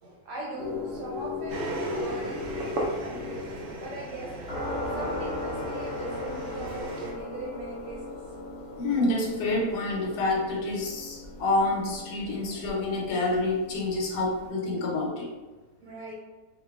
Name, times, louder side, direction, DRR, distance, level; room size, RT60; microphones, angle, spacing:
voice 1, 0.0-4.3 4.9-8.2 15.8-16.1, right 1 dB, 85° right, -3 dB, 1.4 m, -39 dB
sound 1, 0.6-14.5, left 2 dB, 55° left, 1.1 m, -38 dB
sound 2, 1.5-7.1, right 2 dB, 70° right, 0.8 m, -36 dB
voice 2, 8.8-15.3, left 2 dB, 80° left, -2 dB, 1.2 m, -28 dB
2.8 x 2.4 x 2.3 m, 1.2 s
omnidirectional pair, 1.7 m